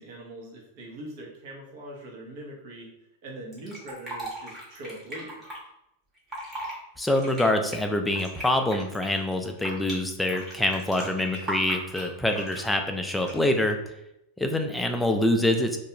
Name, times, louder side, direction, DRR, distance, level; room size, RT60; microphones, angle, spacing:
voice 1, 0.0-2.9 3.2-5.4, right 1 dB, 60° right, -2 dB, 0.9 m, -42 dB
Fill (with liquid), 3.5-5.6 6.2-6.7 7.1-9.9 10.3-12.7 13.2-13.6, right 1 dB, 15° right, 1.1 m, -37 dB
voice 2, 7.0-13.8 14.4-15.8, left 1 dB, 5° left, 5 dB, 0.3 m, -25 dB
2.3 x 2.2 x 2.8 m, 0.84 s
hypercardioid pair, 120°, 0 cm